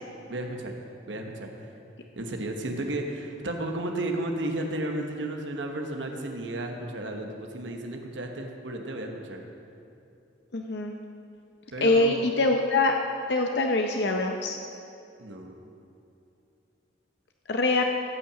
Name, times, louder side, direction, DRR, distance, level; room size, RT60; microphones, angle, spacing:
voice 1, 0.3-0.7 1.1-1.5 2.1-9.4 11.7-12.3 15.2-15.5, right 1 dB, 80° right, 3 dB, 1.2 m, -33 dB
voice 2, 10.5-11.0 11.8-12.9 13.3-14.6 17.5-17.8, left 2 dB, 65° left, 3 dB, 0.7 m, -24 dB
15.0 x 5.7 x 7.4 m, 2.7 s
head